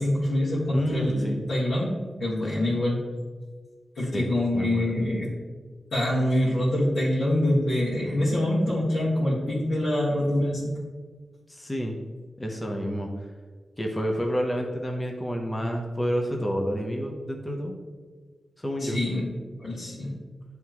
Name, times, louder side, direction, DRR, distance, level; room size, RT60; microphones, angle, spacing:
voice 1, 0.0-3.0 3.9-5.3 5.9-10.8 18.8-19.3 19.6-20.1, left 1 dB, 75° left, -10 dB, 1.7 m, -25 dB
voice 2, 0.7-1.4 4.1-4.3 4.5-4.9 11.5-12.0 12.4-13.1 13.8-17.7 18.6-19.0, equal, 15° left, 1 dB, 0.8 m, -29 dB
9.2 x 3.5 x 3.0 m, 1.5 s
cardioid pair, 75°, 0 cm